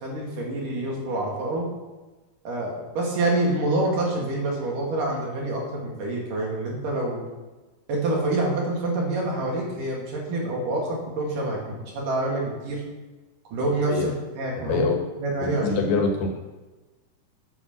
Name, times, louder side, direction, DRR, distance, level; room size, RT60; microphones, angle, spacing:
voice 1, 0.0-1.7 2.5-7.2 7.9-12.8 13.5-14.1 14.4-14.9 15.2-15.7, right 2 dB, 60° right, -2 dB, 3.7 m, -27 dB
voice 2, 14.6-15.0 15.4-16.3, left 4 dB, 80° left, 3 dB, 3.4 m, -24 dB
9.4 x 7.8 x 6.8 m, 1.2 s
omnidirectional pair, 4.5 m